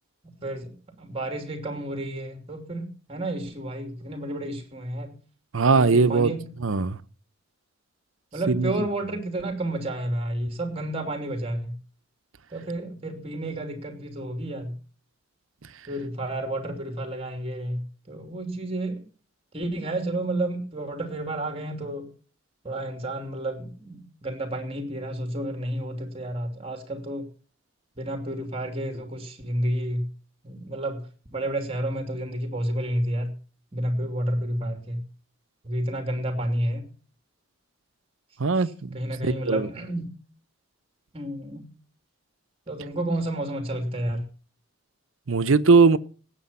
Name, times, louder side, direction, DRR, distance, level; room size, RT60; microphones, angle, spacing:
voice 1, 0.2-0.7 1.0-5.1 5.7-6.5 8.3-11.7 12.5-14.8 15.9-19.0 19.5-22.1 22.6-27.3 28.0-30.1 30.4-31.0 31.3-33.3 33.7-35.0 35.6-36.8 38.9-40.1 41.1-41.7 42.7-44.2, right 1 dB, 30° right, 2.9 m, -30 dB
voice 2, 5.5-6.3 6.6-7.0 8.5-8.7 38.4-39.7 45.3-46.0, right 4 dB, 75° right, 0.8 m, -20 dB
17.5 x 8.6 x 5.6 m
head